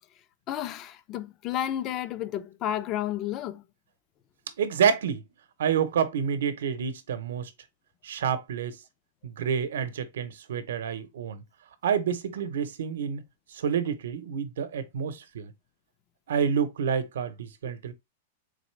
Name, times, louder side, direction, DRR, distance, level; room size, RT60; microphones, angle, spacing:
voice 1, 0.5-3.6, left 11 dB, 25° left, 0.3 m, -31 dB
voice 2, 4.6-5.2 5.6-7.5 8.0-8.8 9.2-11.4 11.8-13.2 13.5-15.5 16.3-17.9, right 7 dB, 85° right, 0.7 m, -28 dB
4.0 x 3.2 x 3.1 m
supercardioid pair, 175°, 0 cm